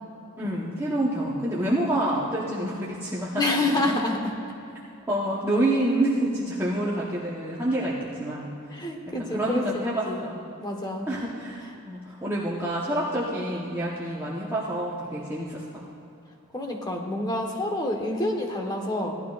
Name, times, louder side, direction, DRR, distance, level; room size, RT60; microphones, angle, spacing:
voice 1, 0.4-3.4 5.1-8.5 9.3-10.4 11.1-15.8, right 1 dB, 10° right, -7 dB, 1.1 m, -27 dB
voice 2, 3.4-4.3 8.7-10.3 10.6-11.1 16.5-19.1, left 2 dB, 20° left, 2 dB, 1.2 m, -28 dB
17.5 x 12.0 x 2.5 m, 2.8 s
head